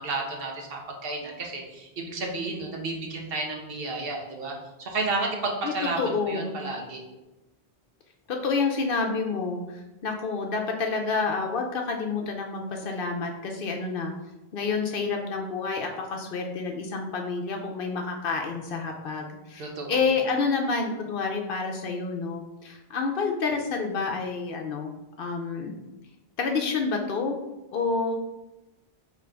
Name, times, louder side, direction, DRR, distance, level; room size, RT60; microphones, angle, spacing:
voice 1, 0.0-7.0 19.6-20.0, right 3 dB, 60° right, 0 dB, 1.0 m, -32 dB
voice 2, 5.6-6.6 8.3-14.1 14.5-24.9 25.2-25.8 26.4-27.4 27.7-28.1, left 4 dB, 60° left, 2 dB, 0.7 m, -29 dB
5.1 x 3.0 x 3.4 m, 1.0 s
omnidirectional pair, 1.1 m